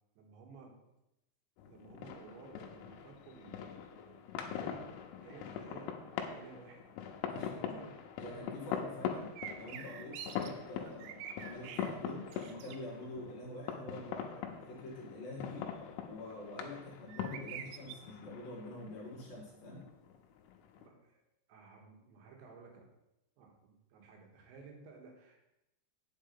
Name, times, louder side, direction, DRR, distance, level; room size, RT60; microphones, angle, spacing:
voice 1, 0.2-0.8 1.7-4.2 4.5-4.9 5.2-6.0 6.2-6.8 7.3-8.0 8.5-8.7 20.8-21.2 21.5-22.9 23.4-25.4, right 5 dB, 70° right, 1 dB, 3.6 m, -55 dB
sound 1, 1.6-20.9, left 8 dB, 85° left, 3.5 m, -43 dB
voice 2, 7.2-7.9 8.2-15.7 16.0-19.9, left 1 dB, 55° left, -3 dB, 3.0 m, -46 dB
sound 2, 9.4-10.5 10.9-11.9 12.3-12.8 17.1-18.0, right 10 dB, 90° right, 3.2 m, -46 dB
8.6 x 7.6 x 5.5 m, 0.88 s
omnidirectional pair, 5.7 m